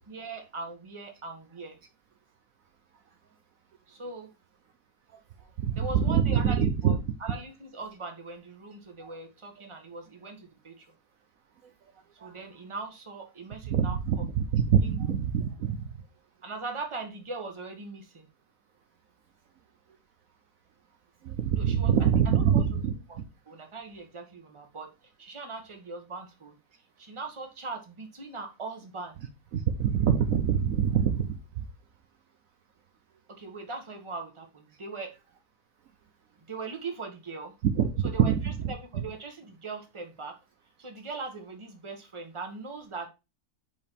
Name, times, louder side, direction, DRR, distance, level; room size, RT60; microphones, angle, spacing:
voice 1, 0.1-1.8 3.9-4.3 5.7-10.8 12.2-14.0 14.8-15.0 16.4-18.3 21.5-21.9 22.2-22.6 23.1-23.2 23.5-24.9 25.2-26.6 27.0-29.2 33.3-35.1 36.5-37.6 38.0-40.4 40.8-43.1, right 3 dB, 20° right, 3 dB, 1.2 m, -40 dB
voice 2, 5.6-7.0 12.2-12.3 13.7-15.8 21.2-22.9 29.5-31.4 37.6-38.7, right 8 dB, 65° right, 6 dB, 1.1 m, -25 dB
5.2 x 5.0 x 4.4 m, 0.27 s
omnidirectional pair, 1.7 m